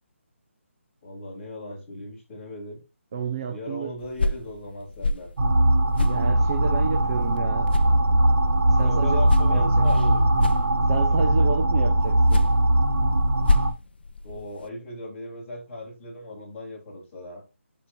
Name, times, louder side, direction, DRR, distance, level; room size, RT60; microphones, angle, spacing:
voice 1, 1.0-2.8 3.5-5.3 8.8-10.2 14.2-17.4, left 1 dB, 10° left, 3.0 m, -37 dB
voice 2, 3.1-3.9 6.1-7.7 8.7-9.2 9.5-9.8 10.9-12.4, right 6 dB, 20° right, 0.6 m, -30 dB
sound 1, 4.0-7.4 7.7-11.2 12.0-14.7, left 2 dB, 45° left, 0.6 m, -29 dB
sound 2, 5.4-13.7, right 1 dB, 75° right, 1.5 m, -20 dB
8.9 x 5.6 x 2.6 m
hypercardioid pair, 175°, 7 cm